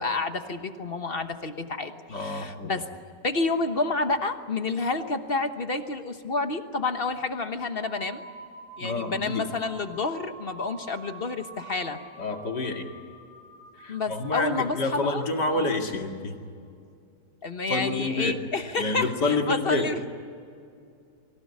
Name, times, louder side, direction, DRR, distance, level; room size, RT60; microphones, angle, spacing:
voice 1, 0.0-2.9 3.2-8.2 8.8-12.0 13.9-15.3 15.6-15.7 17.4-20.1, left 3 dB, 40° left, 8 dB, 1.3 m, -29 dB
voice 2, 2.1-2.7 8.8-9.5 12.2-12.9 13.8-16.4 17.7-18.4 18.8-19.9, left 3 dB, 80° left, 3 dB, 2.8 m, -28 dB
sound 1, 7.8-15.8, right 2 dB, 60° left, 6.2 m, -48 dB
25.0 x 16.5 x 9.7 m, 2.4 s
omnidirectional pair, 1.8 m